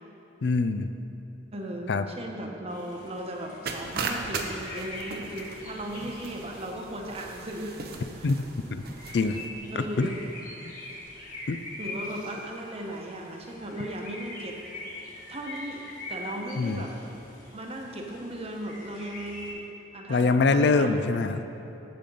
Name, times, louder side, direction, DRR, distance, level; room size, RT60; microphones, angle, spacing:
voice 1, 0.4-0.9 1.9-2.0 8.2-8.4 8.7-8.8 9.1-9.4 9.7-10.1 11.5-11.6 16.6-16.9 20.1-21.4, left 3 dB, 65° left, 10 dB, 0.4 m, -24 dB
voice 2, 1.5-7.8 8.1-8.3 9.1-9.3 9.7-10.2 11.2-11.3 11.8-14.6 15.3-17.0 17.5-19.7 19.9-20.9, right 1 dB, 35° right, 1 dB, 1.0 m, -37 dB
sound 1, 2.7-19.5, left 2 dB, 50° left, 2.0 m, -44 dB
sound 2, 3.7-9.5, right 4 dB, 60° right, 0.7 m, -38 dB
8.7 x 7.6 x 5.4 m, 2.9 s
head